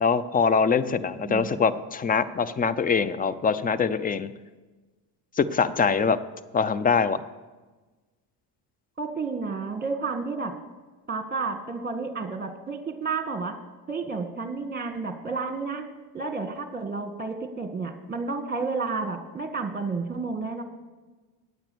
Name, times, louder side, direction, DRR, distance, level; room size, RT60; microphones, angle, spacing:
voice 1, 0.0-4.3 5.4-6.2 6.5-7.2, left 5 dB, 20° left, 16 dB, 0.5 m, -23 dB
voice 2, 0.9-1.5 9.0-10.6 11.1-13.5 13.9-15.8 16.1-20.6, right 4 dB, 20° right, 7 dB, 1.6 m, -31 dB
9.3 x 8.9 x 6.8 m, 1.3 s
supercardioid pair, 80°, 50 cm